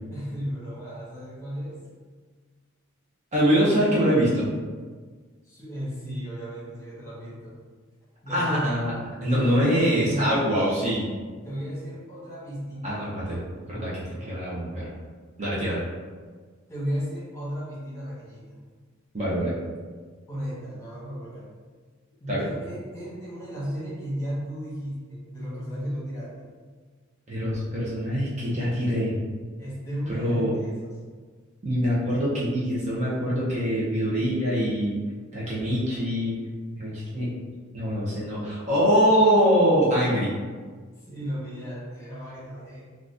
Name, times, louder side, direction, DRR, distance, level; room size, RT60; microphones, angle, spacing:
voice 1, 0.1-1.8 5.4-7.6 8.2-8.7 9.2-10.4 11.4-13.0 16.7-18.6 20.3-21.5 22.2-26.5 29.6-30.9 41.0-42.8, equal, 15° left, -9 dB, 1.1 m, -34 dB
voice 2, 3.3-4.5 8.3-8.9 9.2-11.1 12.8-13.4 13.7-14.9 15.4-15.8 19.1-19.5 22.3-22.5 27.3-29.2 30.1-30.5 31.6-35.0 35.3-36.4 36.8-37.3 37.7-40.3, equal, 35° right, -7 dB, 0.7 m, -24 dB
3.8 x 2.3 x 2.5 m, 1.5 s
head